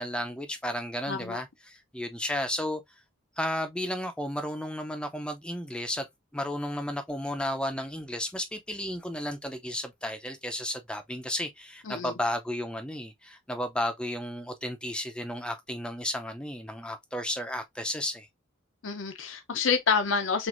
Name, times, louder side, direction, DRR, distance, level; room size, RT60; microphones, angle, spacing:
voice 1, 0.0-2.8 3.4-6.1 6.3-18.3, left 1 dB, 5° left, 0.5 m, -33 dB
voice 2, 1.1-1.4 11.9-12.1 18.8-20.5, left 5 dB, 75° left, 0.7 m, -28 dB
6.0 x 2.5 x 2.5 m
head